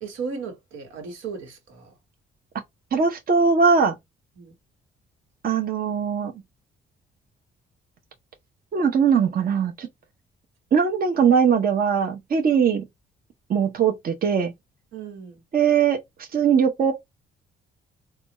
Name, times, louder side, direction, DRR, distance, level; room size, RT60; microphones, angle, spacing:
voice 1, 0.0-1.9 4.4-4.5 14.9-15.4, right 5 dB, 85° right, 1.4 m, -35 dB
voice 2, 2.9-3.9 5.4-6.3 8.7-9.9 10.7-12.8 13.5-14.5 15.5-16.9, right 6 dB, 50° right, 0.8 m, -20 dB
4.1 x 2.3 x 3.0 m
cardioid pair, 90°, 20 cm